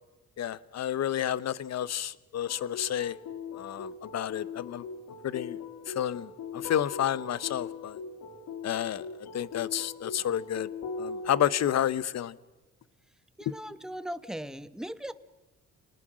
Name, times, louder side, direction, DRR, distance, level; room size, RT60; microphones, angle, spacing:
voice 1, 0.4-3.2 3.6-4.8 5.2-5.6 5.9-8.0 8.6-10.7 11.0-12.3 13.5-13.6, left 10 dB, 60° left, 1.0 m, -30 dB
sound 1, 2.5-11.5, left 5 dB, 80° left, 3.8 m, -40 dB
voice 2, 13.4-15.1, equal, ahead, 1.2 m, -38 dB
29.0 x 19.5 x 6.3 m
cardioid pair, 90°, 30 cm